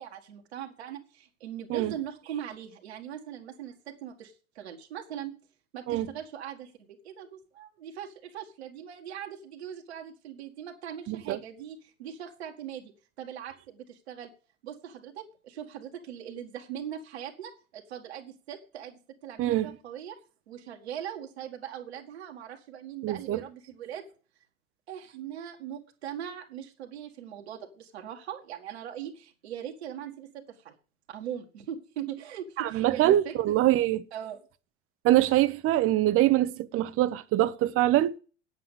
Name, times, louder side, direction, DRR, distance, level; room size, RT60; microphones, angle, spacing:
voice 1, 0.0-5.3 5.7-12.9 13.2-14.3 14.6-20.2 20.5-24.0 24.9-30.8 31.1-33.6 34.1-34.4, right 9 dB, 70° right, 1.8 m, -40 dB
voice 2, 11.1-11.4 19.4-19.8 23.0-23.4 32.6-34.0 35.0-38.2, right 14 dB, 40° right, 0.9 m, -24 dB
9.2 x 8.2 x 6.7 m
figure-of-eight pair, 75°, 33 cm